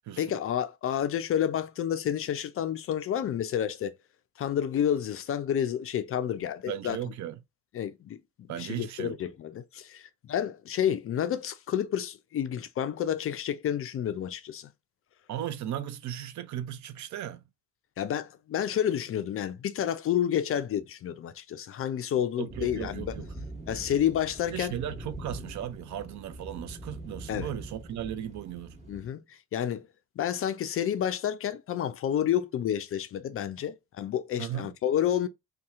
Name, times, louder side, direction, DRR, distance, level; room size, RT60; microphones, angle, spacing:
voice 1, 0.2-4.0 4.4-7.0 7.7-14.7 18.0-23.1 23.7-24.7 27.3-27.5 28.9-29.9 30.2-35.3, left 10 dB, 35° left, 0.4 m, -30 dB
voice 2, 6.7-7.4 8.5-9.2 15.3-17.4 22.4-23.3 24.5-28.8 34.4-34.7, right 11 dB, 40° right, 0.6 m, -36 dB
sound 1, 22.5-29.1, right 1 dB, 15° right, 1.2 m, -43 dB
2.7 x 2.3 x 3.5 m
hypercardioid pair, 60°, 43 cm